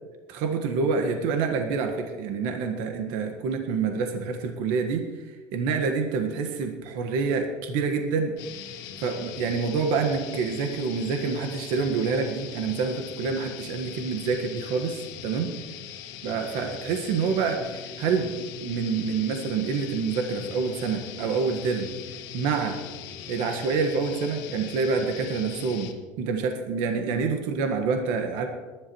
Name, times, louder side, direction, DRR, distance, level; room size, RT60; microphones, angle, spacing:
voice 1, 0.3-5.2 5.5-8.3 8.7-15.5 16.2-21.9 22.3-22.8 23.3-25.9 26.2-28.5, right 5 dB, 70° right, 4 dB, 1.6 m, -27 dB
sound 1, 8.4-25.9, left 8 dB, 65° left, 1.7 m, -41 dB
21.5 x 11.5 x 3.2 m, 1.3 s
supercardioid pair, 125°, 8 cm